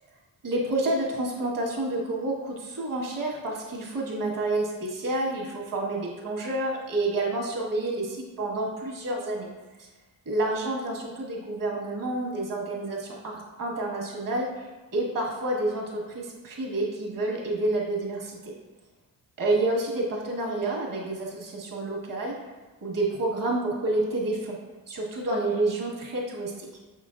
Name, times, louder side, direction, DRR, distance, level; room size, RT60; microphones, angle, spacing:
voice 1, 0.4-9.5 9.8-9.9 10.2-14.6 14.9-18.5 19.4-22.4 22.8-24.6 24.9-26.7, right 2 dB, 70° right, -2 dB, 1.6 m, -29 dB
6.8 x 5.5 x 2.5 m, 1.3 s
wide cardioid pair, 125°, 35 cm